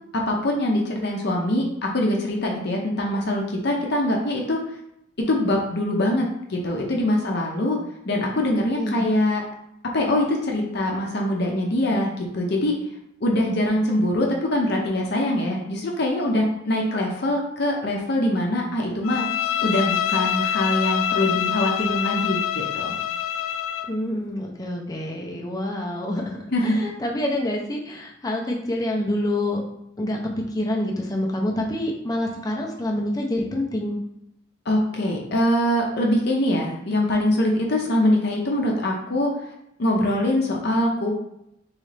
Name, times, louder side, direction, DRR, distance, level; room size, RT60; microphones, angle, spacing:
voice 1, 0.1-4.6 5.2-7.8 8.1-9.4 9.9-12.8 13.2-19.2 19.6-22.9 26.5-26.9 34.7-39.3 39.8-41.1, left 1 dB, 55° left, 0 dB, 0.7 m, -23 dB
voice 2, 8.3-9.1 23.9-29.6 30.0-30.2 30.5-34.0, left 1 dB, 20° left, -1 dB, 0.6 m, -27 dB
Bowed string instrument, 19.0-24.0, left 10 dB, 80° left, 0.3 m, -25 dB
3.7 x 3.2 x 3.3 m, 0.79 s
head